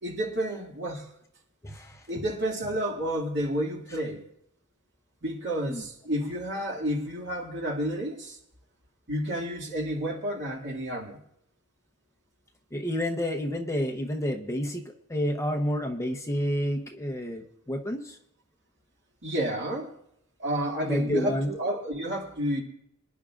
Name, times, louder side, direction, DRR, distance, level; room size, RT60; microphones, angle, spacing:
voice 1, 0.0-1.1 2.1-4.2 5.2-8.4 9.1-11.2 19.2-19.9 20.4-22.6, equal, 55° right, 2.3 m, -30 dB
voice 2, 1.6-2.0 5.6-5.8 12.7-18.2 20.8-21.5, equal, 15° left, 0.8 m, -29 dB
25.5 x 10.0 x 2.5 m
head